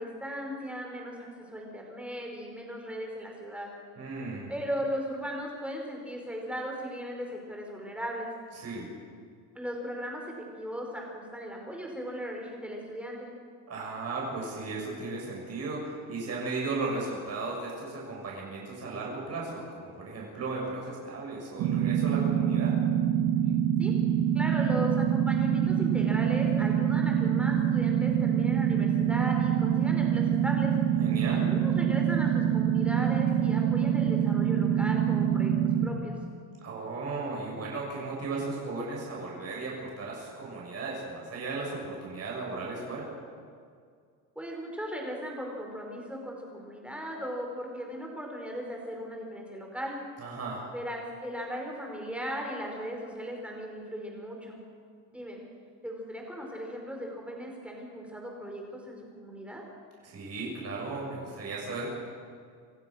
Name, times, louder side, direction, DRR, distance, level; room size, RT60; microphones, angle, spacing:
voice 1, 0.0-3.7 4.5-8.3 9.5-10.2 10.6-13.3 23.8-23.9 24.3-30.7 31.3-35.5 35.8-36.2 44.3-50.0 50.7-54.6 55.1-55.4 55.8-59.6, equal, 5° right, 0 dB, 5.1 m, -37 dB
voice 2, 4.0-4.5 8.5-8.9 13.7-22.8 31.0-31.5 36.6-43.1 50.2-50.7 60.0-61.9, right 3 dB, 40° right, -3 dB, 7.4 m, -36 dB
sound 1, 21.6-35.9, right 9 dB, 85° right, 2.3 m, -25 dB
27.5 x 15.0 x 6.6 m, 2.1 s
cardioid pair, 130°, 37 cm